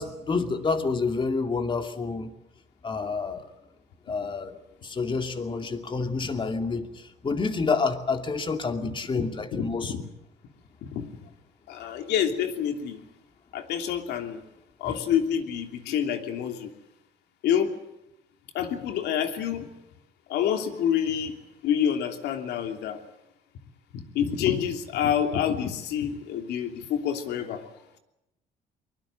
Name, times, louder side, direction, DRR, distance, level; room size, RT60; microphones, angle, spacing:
voice 1, 0.0-2.3 2.8-3.5 4.1-4.6 4.8-9.9 14.8-15.0, left 4 dB, 30° left, 6 dB, 2.6 m, -28 dB
voice 2, 9.5-10.0 10.8-11.1 11.7-13.0 13.5-14.4 14.8-16.7 17.4-17.7 18.5-19.7 20.3-21.3 21.6-23.0 23.9-27.7, left 9 dB, 80° left, 5 dB, 3.0 m, -27 dB
23.0 x 22.0 x 7.8 m, 0.86 s
cardioid pair, 110°, 17 cm